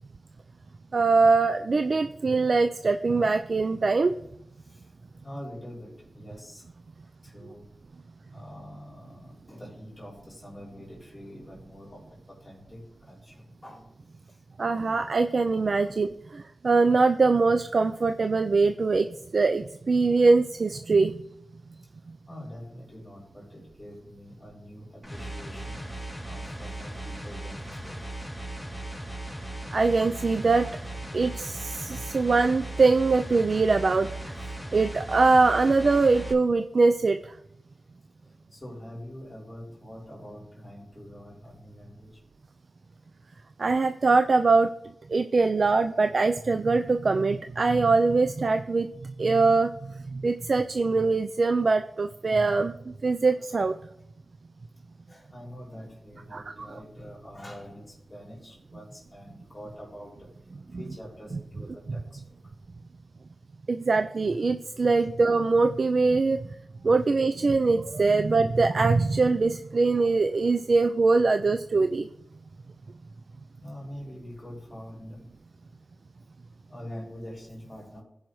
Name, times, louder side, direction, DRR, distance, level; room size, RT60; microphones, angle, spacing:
voice 1, 0.9-4.1 14.6-16.1 16.6-21.2 29.7-30.7 31.1-34.3 34.7-37.3 43.6-44.7 45.1-53.7 56.3-56.4 56.7-56.8 63.7-66.4 66.8-72.1, right 3 dB, 65° right, 8 dB, 0.4 m, -23 dB
voice 2, 4.6-6.7 7.2-7.7 8.3-13.9 14.3-14.4 15.8-15.9 22.3-25.9 26.3-28.0 37.7-37.8 38.2-42.2 55.1-60.3 60.7-62.4 65.0-65.1 68.1-68.2 73.6-75.8 76.7-78.0, equal, 25° left, -3 dB, 4.0 m, -45 dB
sound 1, 25.0-36.3, right 1 dB, 5° right, 3.0 m, -38 dB
16.0 x 5.5 x 3.1 m, 0.80 s
cardioid pair, 45°, 0 cm